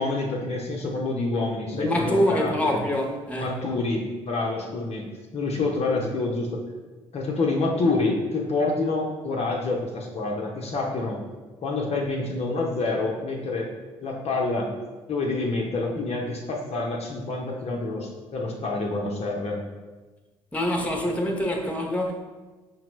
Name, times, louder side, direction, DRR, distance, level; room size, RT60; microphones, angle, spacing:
voice 1, 0.0-2.8 3.3-5.1 5.3-6.6 7.1-11.2 11.6-13.7 14.0-14.7 15.1-19.6, left 3 dB, 45° left, 0.6 m, -27 dB
voice 2, 1.7-3.7 20.5-22.1, equal, 10° left, 0.7 m, -25 dB
5.5 x 2.0 x 3.0 m
hypercardioid pair, 50°, 15 cm